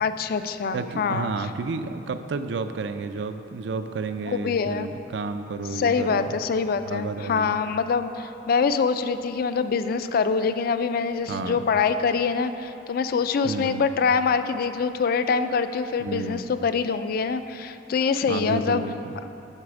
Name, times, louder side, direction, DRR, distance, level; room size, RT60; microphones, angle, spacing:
voice 1, 0.0-1.3 4.3-4.9 5.7-18.8, left 5 dB, 55° left, 11 dB, 0.3 m, -24 dB
voice 2, 0.7-6.4 6.9-7.5 11.3-11.6 13.4-13.9 16.0-16.5 18.3-19.1, right 4 dB, 70° right, 9 dB, 0.4 m, -31 dB
9.8 x 4.1 x 6.0 m, 2.8 s
head